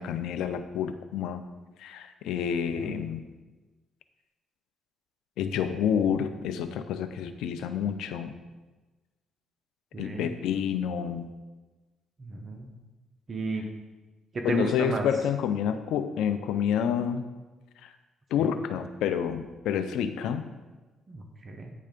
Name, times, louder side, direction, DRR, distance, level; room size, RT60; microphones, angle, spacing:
voice 1, 0.0-1.4 1.8-3.2 5.4-8.4 10.0-11.3 14.4-17.3 17.8-17.9 18.3-20.4, left 8 dB, 85° left, 10 dB, 0.5 m, -29 dB
voice 2, 9.9-10.3 12.2-12.7 13.3-13.6 14.3-15.0 18.4-18.5 21.1-21.7, right 3 dB, 40° right, 3 dB, 0.9 m, -34 dB
9.3 x 3.3 x 5.2 m, 1.2 s
cardioid pair, 90°, 0 cm